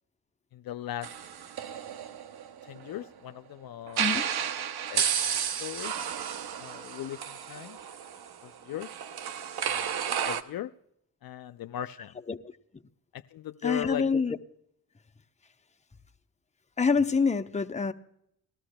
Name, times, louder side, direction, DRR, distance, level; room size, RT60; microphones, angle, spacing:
voice 1, 0.5-1.1 2.6-4.0 4.9-5.0 5.6-5.9 6.6-7.8 8.4-8.9 9.7-10.0 10.2-10.7 11.2-12.1 13.1-14.0, left 12 dB, 55° left, 0.5 m, -38 dB
sound 1, 1.0-3.1 3.9-10.4, right 8 dB, 60° right, 0.8 m, -32 dB
voice 2, 13.6-14.4 16.8-17.9, left 5 dB, 15° left, 0.7 m, -26 dB
19.5 x 12.5 x 2.2 m
supercardioid pair, 50°, 43 cm